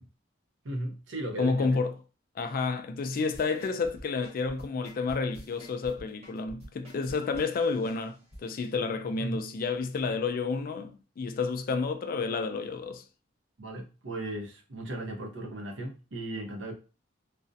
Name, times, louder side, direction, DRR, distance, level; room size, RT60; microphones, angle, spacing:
voice 1, 0.6-1.8 9.2-9.4 13.6-16.7, right 1 dB, 70° right, 0.6 m, -36 dB
voice 2, 1.4-1.9 2.4-8.2 8.4-13.0, left 4 dB, 50° left, 0.3 m, -30 dB
sound 1, 3.3-8.4 8.8-8.9, equal, 35° right, 0.9 m, -47 dB
2.4 x 2.0 x 2.5 m
head